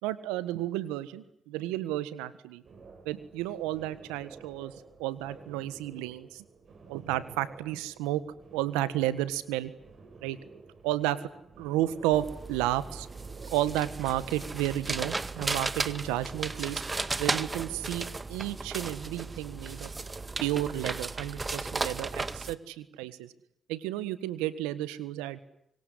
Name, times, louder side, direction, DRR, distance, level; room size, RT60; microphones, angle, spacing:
voice 1, 0.0-2.6 3.0-4.7 5.0-6.4 6.9-8.2 8.5-9.7 10.2-10.4 10.8-11.3 11.6-13.1 13.5-16.8 17.2-19.9 20.4-23.3 23.7-25.4, right 14 dB, 90° right, 15 dB, 1.5 m, -32 dB
sound 1, 2.6-18.0, right 4 dB, 60° right, 7.8 m, -52 dB
sound 2, 12.1-22.5, right 3 dB, 30° right, 1.9 m, -35 dB
25.5 x 22.5 x 9.7 m, 0.74 s
hypercardioid pair, 45°, 0 cm